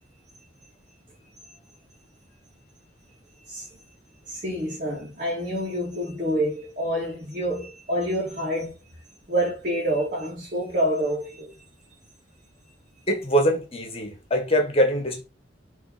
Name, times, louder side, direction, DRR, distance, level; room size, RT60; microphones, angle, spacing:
voice 1, 1.2-1.6 3.4-3.8 4.3-8.8 9.3-11.6, equal, 45° right, 2.7 m, -28 dB
voice 2, 13.1-15.2, equal, 30° left, 1.6 m, -23 dB
6.5 x 3.7 x 5.8 m
head